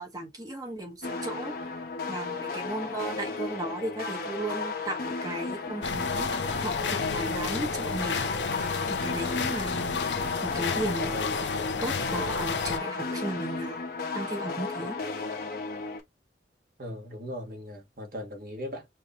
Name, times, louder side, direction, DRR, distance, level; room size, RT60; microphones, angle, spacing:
voice 1, 0.0-1.5 2.1-8.2 8.9-10.1 10.4-11.4 11.8-13.8 14.1-14.9, right 1 dB, 20° right, 1.0 m, -35 dB
sound 1, 1.0-16.0, left 3 dB, 55° left, 1.0 m, -34 dB
sound 2, 5.8-12.8, left 5 dB, 85° left, 0.7 m, -31 dB
voice 2, 16.8-18.9, equal, 55° right, 1.4 m, -38 dB
4.6 x 2.7 x 2.9 m
head